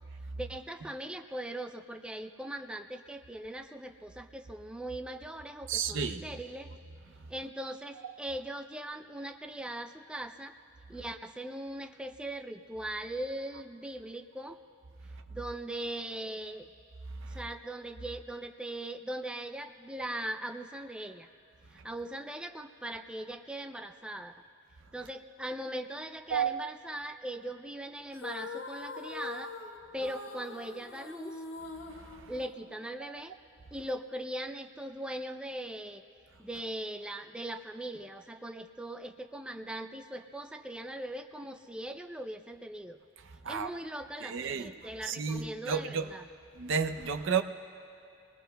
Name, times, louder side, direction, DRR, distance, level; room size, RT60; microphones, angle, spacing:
voice 1, 0.4-6.7 7.3-10.5 10.9-14.6 15.3-16.7 17.3-21.3 21.7-24.3 24.9-29.5 29.9-31.4 32.3-33.3 33.7-36.0 36.4-43.0 43.5-46.3, right 1 dB, 5° right, 6 dB, 0.4 m, -40 dB
voice 2, 5.7-6.2 26.3-26.6 43.4-43.7 44.2-44.7 45.1-46.1 46.6-47.4, right 6 dB, 70° right, 9 dB, 0.7 m, -31 dB
sound 1, 28.1-32.9, left 3 dB, 75° left, 1.2 m, -43 dB
29.0 x 20.5 x 2.3 m, 2.6 s
head